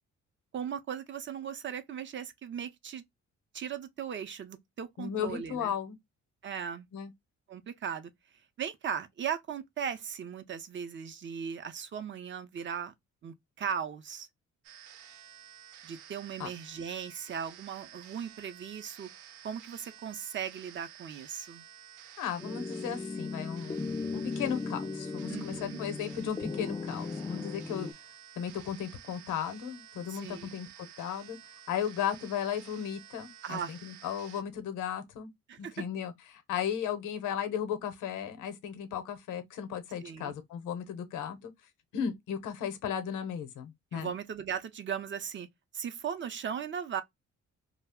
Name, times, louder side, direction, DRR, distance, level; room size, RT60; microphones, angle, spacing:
voice 1, 0.5-3.0 3.5-5.7 6.4-6.9 7.5-8.1 8.6-12.9 13.2-14.3 15.8-19.1 19.4-21.6 25.3-25.8 30.1-30.5 33.4-33.7 35.5-35.7 40.0-40.3 43.9-45.5 45.7-47.0, right 8 dB, 40° right, 0.5 m, -38 dB
voice 2, 5.0-6.0 6.9-7.1 16.4-16.5 22.2-23.8 24.1-27.9 28.4-30.7 31.0-31.4 31.7-35.3 35.6-41.5 41.9-44.1, left 8 dB, 85° left, 0.7 m, -35 dB
sound 1, 14.6-34.4, right 10 dB, 85° right, 0.5 m, -52 dB
sound 2, 22.4-27.9, left 4 dB, 15° left, 0.3 m, -37 dB
2.3 x 2.0 x 3.4 m
cardioid pair, 90°, 30 cm